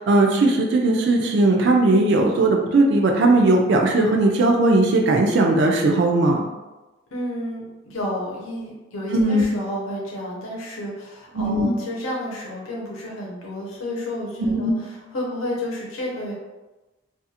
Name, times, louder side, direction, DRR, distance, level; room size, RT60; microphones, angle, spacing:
voice 1, 0.0-6.4 9.1-9.4 11.4-11.8 14.4-14.7, right 2 dB, 55° right, 1 dB, 0.3 m, -18 dB
voice 2, 7.1-16.3, left 1 dB, 80° left, -4 dB, 0.8 m, -31 dB
2.4 x 2.4 x 2.7 m, 1.1 s
head